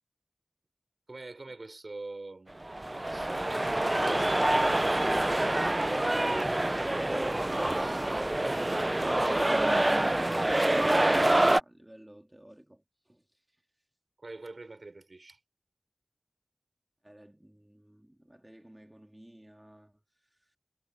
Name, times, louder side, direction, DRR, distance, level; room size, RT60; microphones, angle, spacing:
voice 1, 1.1-2.8 3.0-4.9 14.2-15.4, right 2 dB, 80° right, 5.4 m, -44 dB
sound 1, 2.6-11.6, right 1 dB, 35° right, 0.4 m, -26 dB
voice 2, 7.4-13.7 17.0-20.6, right 1 dB, 20° right, 3.2 m, -55 dB
wide cardioid pair, 45°, 0 cm